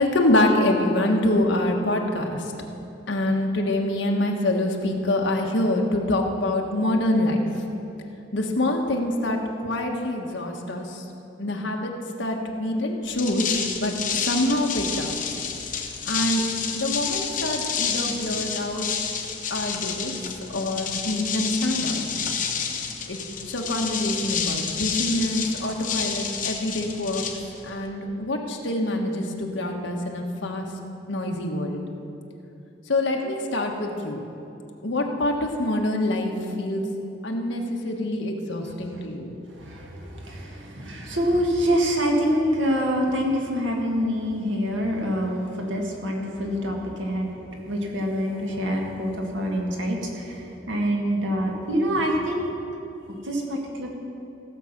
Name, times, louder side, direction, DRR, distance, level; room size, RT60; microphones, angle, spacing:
voice 1, 0.0-2.4 3.1-7.4 8.3-11.0 11.4-11.9 12.2-13.5 13.7-15.1 16.1-16.4 16.7-18.9 19.5-20.1 20.5-22.1 23.1-23.2 23.5-27.2 27.6-30.7 31.1-31.8 32.9-34.2 34.8-35.3 35.6-36.3 36.6-36.8 37.2-39.3, left 1 dB, 75° left, 1 dB, 1.4 m, -25 dB
sound 1, 13.0-27.9, left 7 dB, 45° left, 1.1 m, -29 dB
voice 2, 39.6-47.3 47.7-50.4 50.7-52.5 53.2-53.9, equal, 80° right, 0 dB, 1.8 m, -25 dB
16.0 x 7.3 x 5.9 m, 2.9 s
head